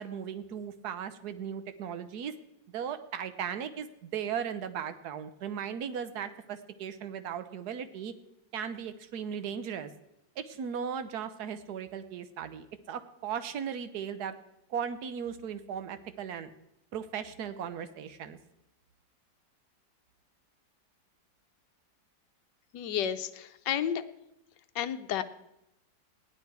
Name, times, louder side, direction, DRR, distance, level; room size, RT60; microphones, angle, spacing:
voice 1, 0.0-2.3 2.7-8.1 8.5-9.9 10.4-14.3 14.7-16.5 16.9-18.4, right 8 dB, 65° right, 11 dB, 1.3 m, -37 dB
voice 2, 22.7-24.0 24.7-25.2, left 9 dB, 70° left, 10 dB, 1.3 m, -31 dB
16.0 x 10.5 x 4.7 m, 0.86 s
omnidirectional pair, 2.0 m